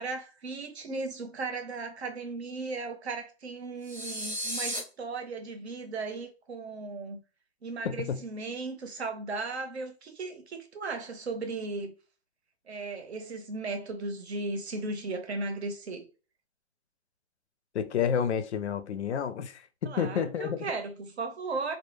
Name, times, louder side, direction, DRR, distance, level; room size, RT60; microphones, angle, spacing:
voice 1, 0.0-7.2 7.6-11.9 12.7-16.1 19.9-21.7, right 3 dB, 70° right, 0.8 m, -36 dB
sound 1, 3.8-4.8, equal, 15° right, 0.7 m, -34 dB
voice 2, 7.8-8.2 17.7-20.7, left 8 dB, 75° left, 0.5 m, -30 dB
2.1 x 2.1 x 3.1 m
hypercardioid pair, 165°, 34 cm